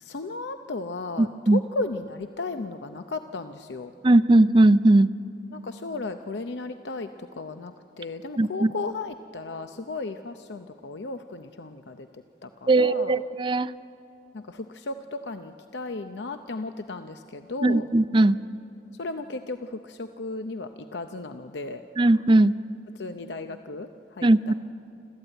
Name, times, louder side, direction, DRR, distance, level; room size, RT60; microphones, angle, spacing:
voice 1, 0.0-3.9 5.5-12.1 12.4-13.2 14.3-17.8 19.0-21.8 23.0-23.9 24.2-24.5, left 3 dB, 80° left, 8 dB, 0.7 m, -35 dB
voice 2, 1.2-1.6 4.0-5.1 8.4-8.7 12.7-13.7 17.6-18.4 22.0-22.6 24.2-24.5, right 2 dB, 25° right, 15 dB, 0.4 m, -19 dB
28.5 x 13.5 x 9.0 m, 2.8 s
head